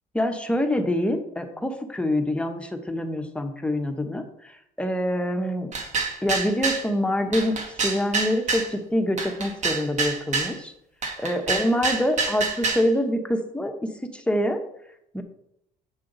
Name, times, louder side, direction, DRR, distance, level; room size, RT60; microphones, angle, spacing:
voice 1, 0.1-4.2 4.8-5.7 6.2-7.5 7.8-10.7 11.2-14.6 15.1-15.2, left 1 dB, 5° left, 5 dB, 1.0 m, -25 dB
sound 1, 5.7-6.9 7.3-8.7 9.2-10.5 11.0-12.9, right 4 dB, 45° right, 1.7 m, -27 dB
7.9 x 5.7 x 3.9 m, 0.76 s
cardioid pair, 110°, 17 cm